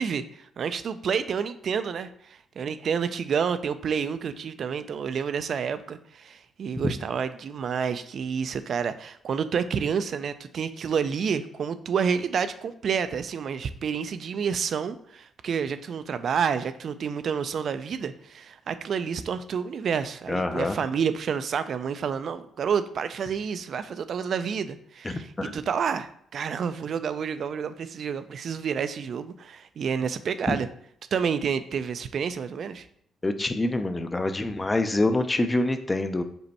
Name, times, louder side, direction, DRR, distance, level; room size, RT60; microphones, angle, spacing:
voice 1, 0.0-30.7 31.1-32.9, right 6 dB, 55° right, 12 dB, 0.3 m, -29 dB
voice 2, 20.3-20.7 25.0-25.5 30.5-30.6 33.2-36.2, left 2 dB, 20° left, 8 dB, 0.4 m, -26 dB
5.3 x 2.1 x 4.1 m, 0.67 s
cardioid pair, 90°, 0 cm